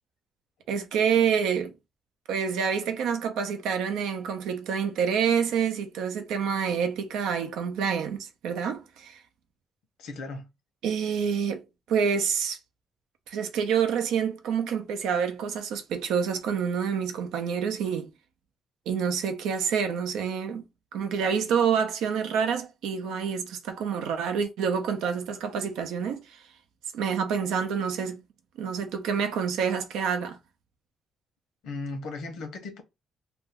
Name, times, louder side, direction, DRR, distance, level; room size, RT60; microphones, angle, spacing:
voice 1, 0.7-1.7 2.3-9.2 10.8-11.6 11.9-12.6 13.3-18.1 18.9-20.6 20.9-26.4 26.9-28.2 28.6-30.4, right 7 dB, 90° right, 0.5 m, -27 dB
voice 2, 10.0-10.5 31.6-32.8, left 3 dB, 85° left, 0.8 m, -36 dB
2.6 x 2.3 x 3.5 m
cardioid pair, 90°, 0 cm